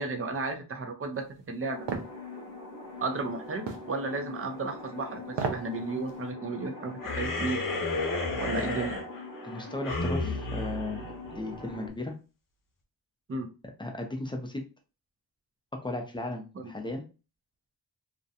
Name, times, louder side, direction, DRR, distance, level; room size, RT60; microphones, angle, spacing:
voice 1, 0.0-1.9 3.0-7.8 8.4-9.0 13.3-13.5, right 3 dB, 35° right, 4 dB, 0.6 m, -34 dB
sound 1, 1.6-11.9, left 3 dB, 50° right, 0.9 m, -43 dB
sound 2, 1.9-2.1 3.7-3.9 5.3-5.7 6.1-6.2, right 5 dB, 85° right, 0.6 m, -32 dB
sound 3, 7.0-11.7, left 2 dB, 50° left, 0.7 m, -32 dB
voice 2, 9.4-12.1 13.8-14.6 15.8-17.0, left 2 dB, 10° left, 2 dB, 0.5 m, -36 dB
2.5 x 2.1 x 2.7 m, 0.32 s
wide cardioid pair, 115°, 41 cm